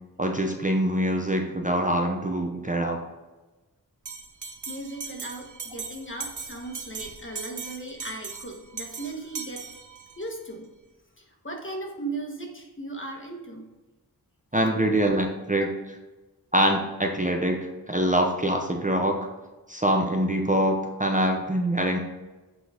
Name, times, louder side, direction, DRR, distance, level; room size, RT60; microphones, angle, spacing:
voice 1, 0.2-3.0 14.5-15.7 16.5-17.6 17.9-19.2 19.7-22.0, right 1 dB, 20° right, 2 dB, 0.8 m, -24 dB
Bell, 4.0-10.3, right 5 dB, 50° right, 0.9 m, -39 dB
voice 2, 4.7-9.7 10.2-10.7 11.2-13.7, right 2 dB, 30° left, 1 dB, 1.5 m, -37 dB
8.2 x 3.9 x 5.0 m, 1.1 s
wide cardioid pair, 65°, 38 cm